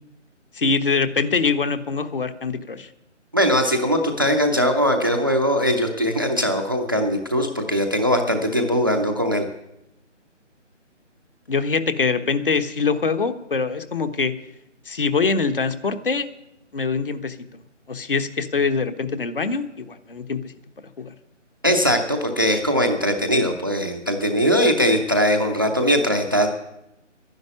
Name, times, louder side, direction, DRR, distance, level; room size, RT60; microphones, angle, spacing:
voice 1, 0.5-2.9 11.5-14.3 14.9-16.3 16.7-17.4 17.9-20.5 21.0-21.1, left 4 dB, 45° left, 9 dB, 1.2 m, -23 dB
voice 2, 3.3-9.5 21.6-26.5, equal, 20° right, 6 dB, 0.6 m, -20 dB
11.5 x 10.5 x 9.4 m, 0.86 s
figure-of-eight pair, 155°, 37 cm